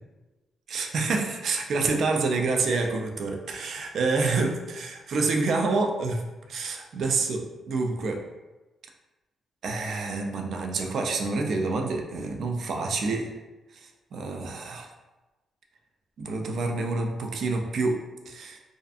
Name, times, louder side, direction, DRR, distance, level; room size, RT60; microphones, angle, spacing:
voice 1, 0.7-6.2 6.5-8.2 9.6-13.3 13.8-14.9 16.2-18.0 18.3-18.6, right 3 dB, 60° right, 2 dB, 0.3 m, -27 dB
2.5 x 2.4 x 2.3 m, 1.1 s
cardioid pair, 115°, 0 cm